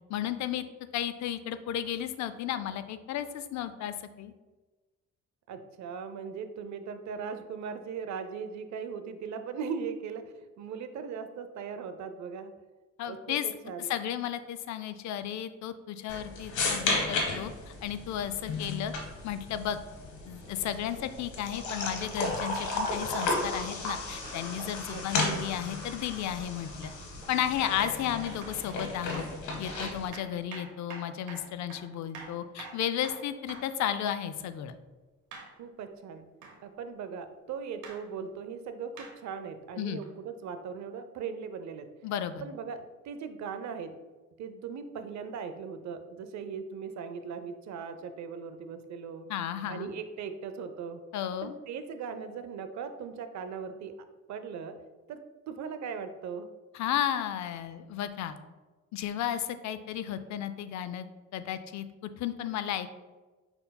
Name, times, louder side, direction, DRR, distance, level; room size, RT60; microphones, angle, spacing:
voice 1, 0.1-0.6 0.9-4.3 13.0-13.4 13.8-17.5 17.8-18.9 19.2-19.8 20.3-26.9 27.3-29.2 29.6-34.7 39.8-40.0 42.0-42.5 49.3-49.9 51.1-51.6 56.7-58.4 58.9-61.1 61.3-62.9, left 10 dB, 65° left, 12 dB, 0.4 m, -33 dB
voice 2, 5.5-12.5 13.0-13.9 24.9-25.4 35.6-36.3 36.6-41.9 42.4-43.9 44.4-49.3 49.7-51.0 51.4-53.9 54.3-54.8 55.1-55.2 55.5-56.5, right 6 dB, 65° right, 9 dB, 0.5 m, -39 dB
sound 1, 16.1-30.1, left 3 dB, 90° left, 1.1 m, -34 dB
sound 2, 19.7-33.4, right 1 dB, 20° right, 0.7 m, -50 dB
sound 3, 22.2-22.4 23.3-23.5 24.2-24.4 25.2-25.4 26.0-26.2 26.8-27.0 27.7-27.9 28.4-28.7 29.1-29.3 29.7-33.8 35.3-35.5 36.4-36.6 37.8-38.0 39.0-39.2 40.0-40.1, right 4 dB, 80° right, 1.0 m, -47 dB
5.2 x 4.4 x 2.2 m, 1.2 s
cardioid pair, 90°, 30 cm